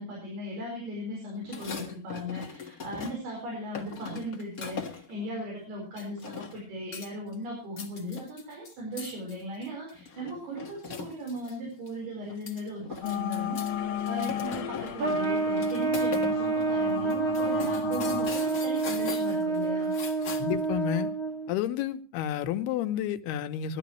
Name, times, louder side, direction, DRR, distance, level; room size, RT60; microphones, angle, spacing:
voice 1, 0.0-19.9, equal, 80° right, -1 dB, 6.6 m, -37 dB
sound 1, 1.4-3.4 3.7-5.2 6.0-6.6 6.9-7.3 7.6-11.5 11.9-12.0 12.3-13.7 14.0-16.3 16.6-16.7 17.1-20.7, left 5 dB, 50° left, 0.9 m, -40 dB
sound 2, 13.0-18.3, left 9 dB, 70° left, 2.8 m, -35 dB
Trumpet, 15.0-21.5, right 3 dB, 40° right, 2.0 m, -28 dB
voice 2, 20.4-21.1 21.5-23.8, left 11 dB, 85° left, 8 dB, 2.9 m, -30 dB
21.0 x 12.5 x 3.1 m, 0.34 s
omnidirectional pair, 4.5 m